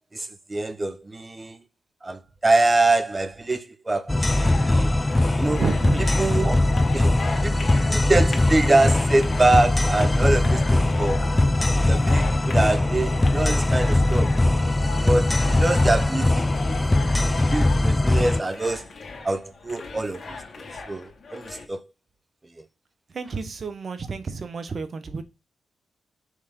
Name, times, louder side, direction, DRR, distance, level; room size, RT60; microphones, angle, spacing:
voice 1, 0.1-1.6 2.0-4.9 5.4-5.6 6.2-6.6 6.9-11.4 11.8-14.4 15.0-18.9 19.2-21.9 22.6-22.7, right 2 dB, 25° right, 1.0 m, -25 dB
sound 1, 4.1-18.4, left 2 dB, 20° left, 0.4 m, -21 dB
sound 2, 4.3-21.7, left 4 dB, 55° left, 2.1 m, -40 dB
sound 3, 5.2-17.9, left 8 dB, 85° left, 1.0 m, -40 dB
voice 2, 5.6-6.2 23.1-25.2, right 4 dB, 55° right, 1.2 m, -30 dB
6.4 x 3.6 x 5.3 m
supercardioid pair, 50°, 0 cm